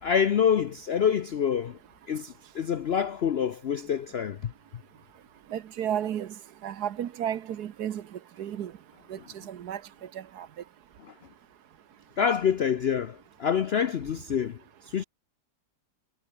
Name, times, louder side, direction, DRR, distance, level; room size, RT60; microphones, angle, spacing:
voice 1, 0.0-1.8 2.1-4.5 12.2-15.0, left 7 dB, 75° left, 0.5 m, -26 dB
voice 2, 5.5-6.3 6.6-8.0 8.4-8.7 9.1-9.2 9.4-9.8 10.1-10.5, right 10 dB, 65° right, 1.4 m, -32 dB
omnidirectional pair, 2.0 m